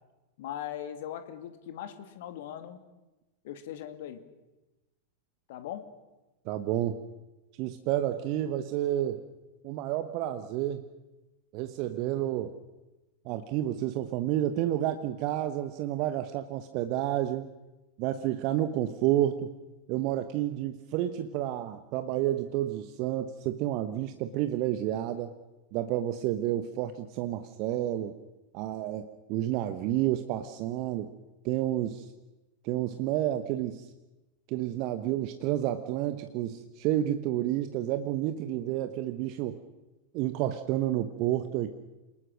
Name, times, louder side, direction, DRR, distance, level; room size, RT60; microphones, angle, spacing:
voice 1, 0.4-2.8 3.4-4.2 5.5-5.9, left 10 dB, 55° left, 9 dB, 2.4 m, -39 dB
voice 2, 6.5-7.0 7.6-9.2 9.6-10.8 11.5-12.6 13.2-17.5 18.0-19.5 19.9-25.3 25.7-28.1 28.5-31.1 31.4-32.1 32.6-33.9 34.5-39.6 40.1-41.7, right 13 dB, 45° right, 9 dB, 1.2 m, -30 dB
28.0 x 19.5 x 6.5 m, 1.1 s
figure-of-eight pair, 90°, 0 cm